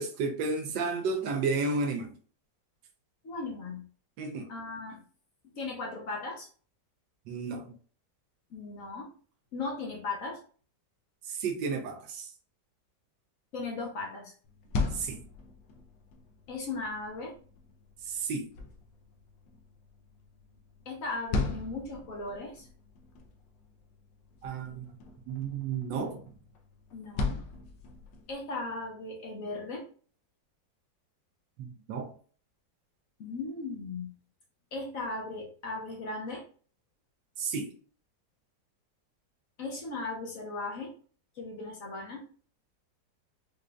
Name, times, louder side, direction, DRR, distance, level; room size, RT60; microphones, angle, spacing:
voice 1, 0.0-2.1 4.2-4.5 7.3-7.7 11.3-12.3 14.9-15.2 18.1-18.5 24.4-24.9 25.3-26.2 31.6-32.1 37.4-37.7, right 4 dB, 80° right, 1.2 m, -32 dB
voice 2, 3.2-3.9 4.5-5.0 5.6-6.5 8.5-9.1 9.5-10.4 13.5-14.3 16.5-17.3 20.9-22.7 26.9-27.4 28.3-29.9 33.2-34.1 34.7-36.4 39.6-40.9 41.4-42.2, left 3 dB, 55° left, 1.0 m, -37 dB
sound 1, 14.4-28.4, left 3 dB, 85° left, 1.3 m, -39 dB
4.9 x 2.5 x 2.2 m
omnidirectional pair, 2.0 m